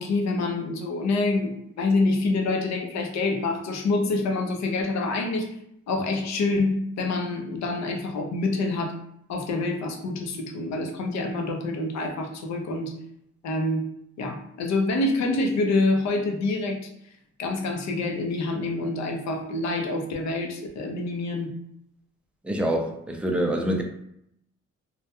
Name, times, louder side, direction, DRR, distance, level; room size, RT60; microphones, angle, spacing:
voice 1, 0.0-5.5 5.9-9.0 9.3-12.9 13.4-13.9 14.2-16.8 17.4-21.5, left 2 dB, 65° left, 3 dB, 0.6 m, -26 dB
voice 2, 22.4-23.8, right 1 dB, 5° right, 2 dB, 0.4 m, -25 dB
2.2 x 2.2 x 2.8 m, 0.75 s
cardioid pair, 90°, 30 cm